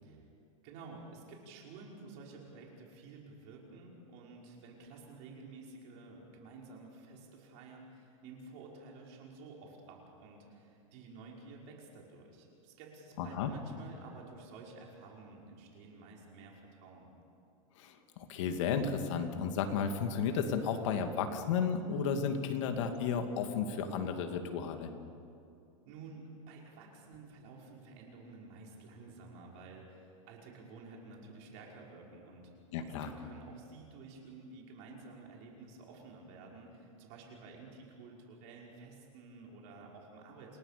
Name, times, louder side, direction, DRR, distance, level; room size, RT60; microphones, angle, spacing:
voice 1, 0.6-17.1 25.9-40.6, right 3 dB, 45° right, -1 dB, 5.6 m, -52 dB
voice 2, 13.2-13.5 17.8-24.9 32.7-33.1, left 6 dB, 60° left, 5 dB, 2.6 m, -33 dB
29.0 x 18.0 x 6.9 m, 2.6 s
supercardioid pair, 155°, 17 cm